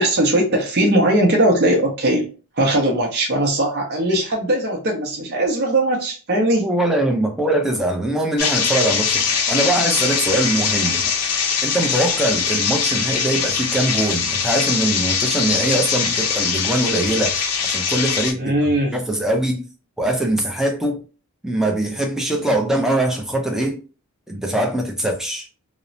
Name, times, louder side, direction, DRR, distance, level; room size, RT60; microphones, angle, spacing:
voice 1, 0.0-2.3 2.6-6.7 18.4-19.0, right 1 dB, 50° right, 0.6 m, -19 dB
voice 2, 6.6-11.1 11.6-18.5 18.9-19.6 20.0-21.0 21.4-23.8 24.3-25.5, right 1 dB, ahead, 0.4 m, -22 dB
sound 1, 8.4-18.3, left 6 dB, 85° left, 0.6 m, -22 dB
2.9 x 2.0 x 2.6 m
head